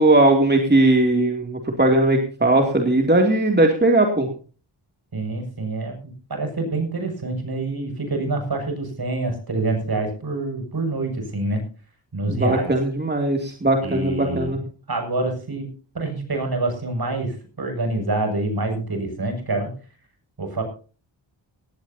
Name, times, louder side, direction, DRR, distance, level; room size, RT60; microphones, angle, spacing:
voice 1, 0.0-4.3 12.2-14.6, right 2 dB, 20° right, 2 dB, 2.8 m, -18 dB
voice 2, 5.1-11.6 12.1-12.7 13.8-15.7 15.9-19.7 20.4-20.6, right 2 dB, 50° right, 4 dB, 7.3 m, -26 dB
18.0 x 16.5 x 2.9 m, 0.37 s
cardioid pair, 60°, 48 cm